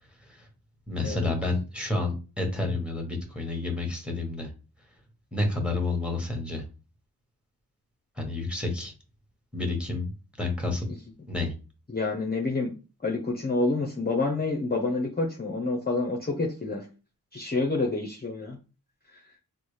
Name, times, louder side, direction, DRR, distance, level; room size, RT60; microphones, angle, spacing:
voice 1, 0.9-4.5 5.3-6.6 8.2-8.9 9.5-10.1 10.4-10.9 11.3-11.5, left 2 dB, 5° right, 3 dB, 1.1 m, -29 dB
voice 2, 11.9-12.7 13.0-16.9 17.3-18.6 19.1-19.2, left 3 dB, 25° left, 0 dB, 0.6 m, -28 dB
4.0 x 2.1 x 3.2 m, 0.33 s
wide cardioid pair, 45°, 39 cm